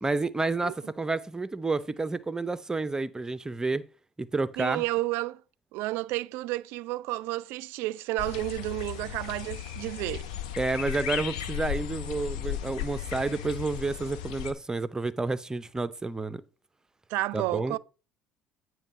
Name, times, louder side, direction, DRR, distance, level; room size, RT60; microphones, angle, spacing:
voice 1, 0.0-3.9 4.2-4.8 10.6-16.4 17.3-17.8, right 3 dB, 15° right, 0.6 m, -30 dB
voice 2, 4.6-5.4 5.7-10.3 17.1-17.8, right 18 dB, 65° right, 0.3 m, -31 dB
sound 1, 8.2-14.5, left 10 dB, 75° left, 0.7 m, -36 dB
8.7 x 3.1 x 6.5 m
hypercardioid pair, 65°, 4 cm